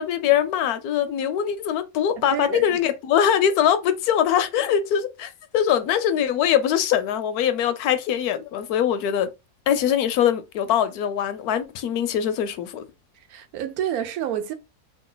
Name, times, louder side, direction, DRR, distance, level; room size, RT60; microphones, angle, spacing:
voice 1, 0.0-9.3 9.7-12.8, left 9 dB, 80° left, 1.1 m, -22 dB
voice 2, 2.3-2.8 13.2-14.5, right 10 dB, 75° right, 1.1 m, -29 dB
3.1 x 2.4 x 3.8 m
omnidirectional pair, 1.6 m